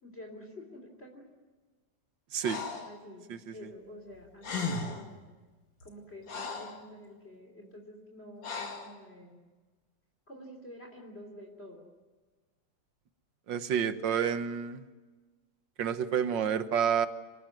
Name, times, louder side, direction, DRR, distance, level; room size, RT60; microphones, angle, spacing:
voice 1, 0.0-1.3 2.8-3.2 3.5-5.2 5.8-9.4 10.3-11.8, left 1 dB, 30° left, 2 dB, 3.6 m, -48 dB
voice 2, 2.3-2.6 13.5-14.8 15.8-17.1, right 8 dB, 75° right, 10 dB, 1.9 m, -29 dB
Breathing, 2.4-2.9 4.1-4.2 4.4-5.1 5.8-6.8 8.4-8.9, left 4 dB, 85° left, 3.0 m, -36 dB
27.0 x 19.0 x 9.3 m, 1.3 s
omnidirectional pair, 2.0 m